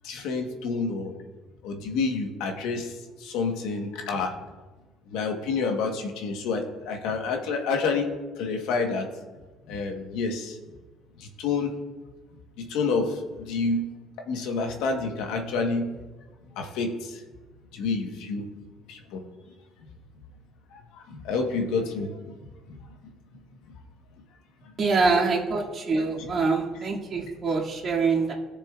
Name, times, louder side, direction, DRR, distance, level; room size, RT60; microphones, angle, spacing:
voice 1, 0.0-1.1 1.6-2.9 3.2-4.3 5.1-8.0 8.4-9.0 9.7-10.5 11.4-11.7 12.6-13.1 13.4-13.8 14.3-15.8 16.6-16.9 17.7-18.4 18.9-19.2 21.1-22.1 26.2-26.3, left 4 dB, 85° left, 3 dB, 1.2 m, -28 dB
voice 2, 24.8-28.3, right 4 dB, 45° right, -3 dB, 2.2 m, -25 dB
15.0 x 6.7 x 2.4 m, 1.3 s
cardioid pair, 105°, 0 cm